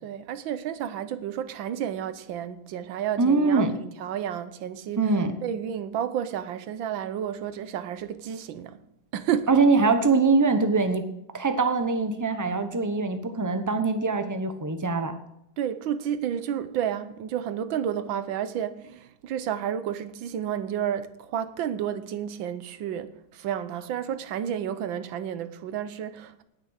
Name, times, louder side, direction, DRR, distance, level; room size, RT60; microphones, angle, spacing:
voice 1, 0.0-5.0 5.4-8.8 9.1-9.5 15.6-26.4, right 9 dB, 90° right, 1.6 m, -31 dB
voice 2, 3.2-3.7 5.0-5.3 9.5-11.1 11.3-15.2, right 4 dB, 20° right, 0.5 m, -23 dB
18.5 x 6.7 x 6.5 m
omnidirectional pair, 2.0 m